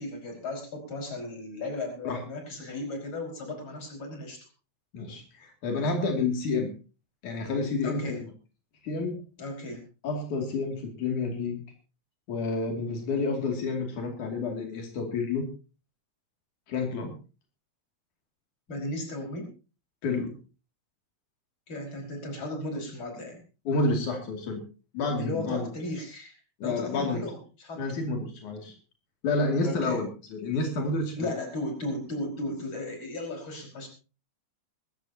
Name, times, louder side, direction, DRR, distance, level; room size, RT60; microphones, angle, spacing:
voice 1, 0.0-4.4 7.8-8.2 9.4-9.8 18.7-19.5 21.7-23.4 25.2-27.8 29.6-30.0 31.1-33.9, left 1 dB, 40° left, 2 dB, 5.8 m, -35 dB
voice 2, 4.9-6.7 7.2-8.3 8.8-9.2 10.0-11.6 12.3-15.5 16.7-17.1 20.0-20.4 23.7-24.6 24.9-25.7 26.6-27.2 27.8-28.8 29.2-31.3, left 3 dB, 85° left, 3 dB, 4.0 m, -29 dB
21.0 x 16.0 x 2.8 m, 0.33 s
omnidirectional pair, 3.4 m